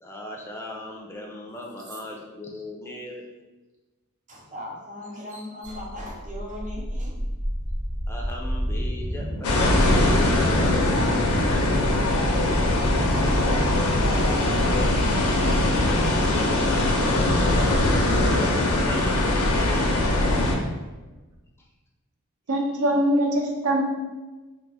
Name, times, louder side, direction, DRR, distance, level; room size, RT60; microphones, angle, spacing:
voice 1, 0.0-3.2 8.1-10.8 17.2-18.5 18.9-19.9, left 1 dB, 10° left, 0 dB, 0.4 m, -38 dB
voice 2, 4.3-7.1 12.1-14.7, equal, 35° right, -3 dB, 0.7 m, -38 dB
sound 1, 5.6-10.0, equal, 60° right, 1.0 m, -31 dB
sound 2, 9.4-20.6, left 1 dB, 85° left, 0.5 m, -21 dB
voice 3, 22.5-23.8, right 1 dB, 80° right, 2 dB, 0.5 m, -22 dB
2.4 x 2.3 x 4.0 m, 1.2 s
head